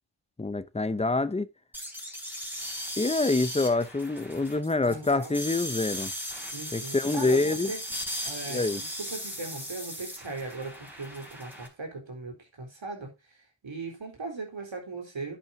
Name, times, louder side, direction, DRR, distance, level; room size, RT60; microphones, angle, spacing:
voice 1, 0.4-1.5 3.0-6.1 6.7-7.7 8.5-8.8, left 3 dB, 15° left, 0.7 m, -26 dB
sound 1, 1.7-11.7, equal, 5° right, 4.2 m, -37 dB
voice 2, 4.8-5.4 6.4-7.8 8.2-8.7 9.0-13.4 13.6-15.4, right 3 dB, 65° right, 4.2 m, -38 dB
10.5 x 8.9 x 2.7 m
wide cardioid pair, 70°, 50 cm